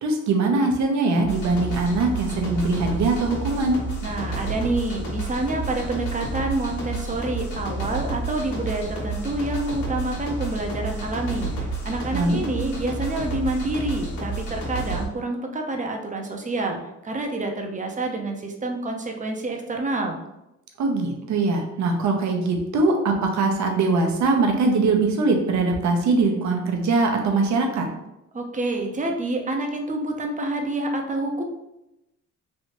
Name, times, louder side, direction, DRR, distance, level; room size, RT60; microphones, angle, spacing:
voice 1, 0.0-3.8 12.1-12.4 20.8-27.9, right 3 dB, 70° right, 2 dB, 0.8 m, -22 dB
real techno, 1.1-15.0, right 2 dB, 75° left, 1.3 m, -30 dB
voice 2, 4.0-20.2 28.3-31.4, right 2 dB, 25° right, 2 dB, 0.6 m, -28 dB
3.2 x 2.6 x 3.0 m, 0.90 s
cardioid pair, 90°, 30 cm